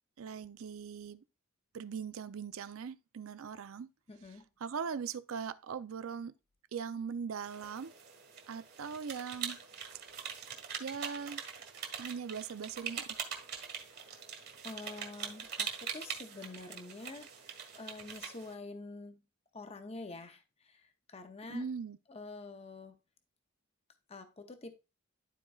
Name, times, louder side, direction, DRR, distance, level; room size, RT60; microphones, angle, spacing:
voice 1, 0.2-1.2 1.7-3.9 4.6-6.3 6.7-7.9 8.5-9.6 10.8-11.4 12.0-13.1 21.5-22.0, right 6 dB, 70° right, 0.5 m, -40 dB
voice 2, 4.1-4.5 13.8-14.1 14.6-19.2 19.5-21.6 22.1-23.0 24.1-24.8, left 3 dB, 30° left, 0.6 m, -47 dB
sound 1, 7.4-18.5, right 7 dB, 50° right, 1.4 m, -43 dB
12.0 x 4.3 x 2.3 m
head